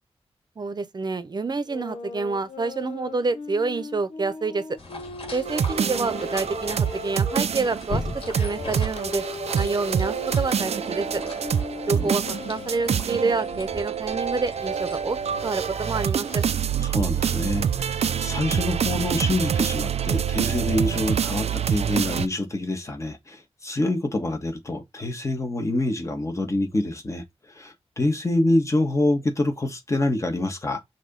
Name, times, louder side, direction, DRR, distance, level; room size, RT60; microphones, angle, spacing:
voice 1, 0.6-4.6 5.3-8.0 8.4-9.2 9.5-11.2 11.9-12.2 12.5-16.4, right 3 dB, 40° right, 0.9 m, -28 dB
sound 1, 1.7-7.5 8.2-13.8, left 4 dB, 85° left, 0.9 m, -39 dB
sound 2, 4.8-16.5, left 2 dB, 60° left, 2.8 m, -39 dB
sound 3, 5.5-22.3, right 8 dB, 75° right, 0.5 m, -26 dB
voice 2, 16.8-30.8, left 2 dB, 30° left, 1.5 m, -26 dB
6.2 x 3.0 x 5.3 m
wide cardioid pair, 135°, 11 cm